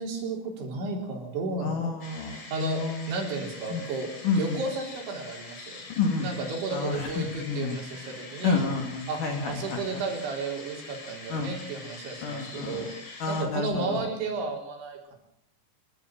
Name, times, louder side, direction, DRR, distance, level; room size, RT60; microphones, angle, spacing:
voice 1, 0.0-1.9 2.5-2.8 3.1-4.1 4.4-5.8 6.2-8.6 9.1-9.2 9.5-12.9 13.3-15.2, right 3 dB, 75° right, 1 dB, 6.3 m, -33 dB
voice 2, 1.6-2.4 2.8-3.1 3.7-3.8 4.2-4.6 6.0-6.3 6.7-7.8 8.4-9.9 11.3-11.6 12.2-12.8 13.2-14.0, left 4 dB, 50° left, 4 dB, 3.3 m, -29 dB
sound 1, 2.0-13.4, left 3 dB, 35° left, 3.7 m, -44 dB
27.0 x 13.0 x 7.6 m, 0.72 s
omnidirectional pair, 5.4 m